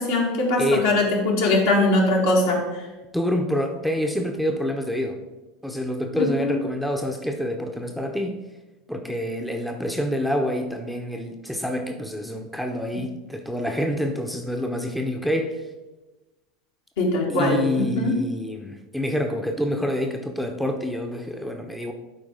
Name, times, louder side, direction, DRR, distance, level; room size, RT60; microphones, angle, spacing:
voice 1, 0.0-2.6 6.2-6.6 17.0-18.2, left 2 dB, 65° left, -1 dB, 2.0 m, -21 dB
voice 2, 0.6-0.9 3.1-5.2 5.6-8.4 8.9-15.6 17.3-21.9, equal, ahead, 4 dB, 0.8 m, -27 dB
11.5 x 4.6 x 3.7 m, 1.1 s
figure-of-eight pair, 80°, 0 cm